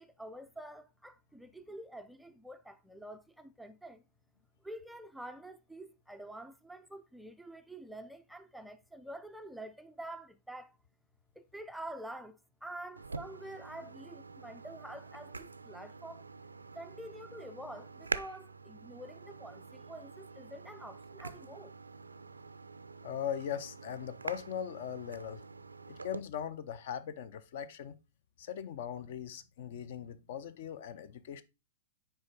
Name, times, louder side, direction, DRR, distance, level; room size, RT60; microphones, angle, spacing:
voice 1, 0.0-4.0 4.6-10.8 11.4-16.3 16.7-21.7, right 1 dB, ahead, 0.3 m, -47 dB
sound 1, 13.0-26.2, right 3 dB, 75° right, 0.4 m, -45 dB
voice 2, 23.0-25.4 25.9-28.0 28.4-31.4, left 9 dB, 50° left, 0.5 m, -40 dB
6.3 x 4.7 x 3.8 m
figure-of-eight pair, 105°, 0 cm